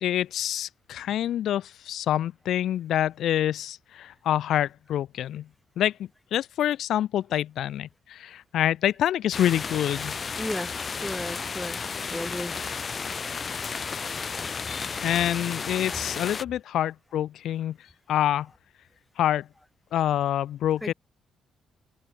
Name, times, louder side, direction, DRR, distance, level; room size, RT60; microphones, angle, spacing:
voice 1, 0.0-5.5 5.8-10.1 15.0-17.8 18.1-18.5 19.2-19.5 19.9-20.9, left 11 dB, 75° left, 0.7 m, -26 dB
sound 1, 9.3-16.4, left 5 dB, 40° left, 1.5 m, -33 dB
voice 2, 10.3-11.8 12.1-12.5 20.8-20.9, left 1 dB, 5° left, 1.0 m, -34 dB
cardioid pair, 90°, 0 cm